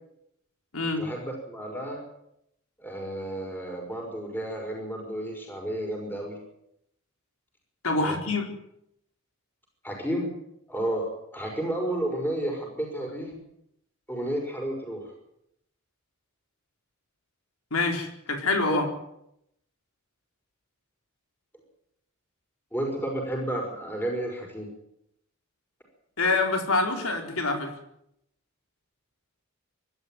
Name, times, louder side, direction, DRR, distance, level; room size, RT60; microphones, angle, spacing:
voice 1, 1.0-2.0 2.8-6.4 8.0-8.2 9.8-10.3 10.7-13.4 14.1-15.1 18.7-18.8 22.7-24.7, right 1 dB, 10° left, 1 dB, 6.0 m, -32 dB
voice 2, 7.8-8.4 17.7-18.9 26.2-27.7, left 3 dB, 90° left, 3 dB, 4.4 m, -26 dB
25.5 x 12.5 x 9.4 m, 0.78 s
head